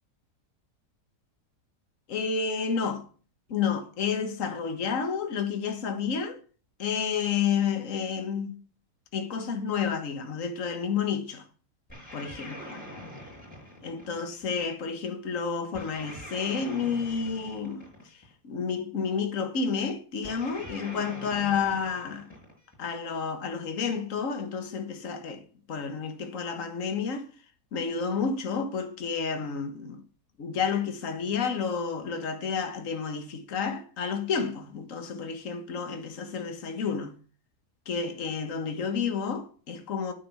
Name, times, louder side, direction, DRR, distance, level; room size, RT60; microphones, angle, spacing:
voice 1, 2.1-3.1 3.5-6.4 6.8-8.6 9.1-11.5 12.1-12.8 13.8-22.3 22.8-27.3 27.7-30.0 30.4-37.1 37.9-40.1, left 6 dB, 55° left, 1.8 m, -30 dB
sound 1, 11.9-14.5 15.7-18.3 20.2-22.8, left 1 dB, 15° left, 6.1 m, -44 dB
9.4 x 7.7 x 7.0 m
omnidirectional pair, 1.7 m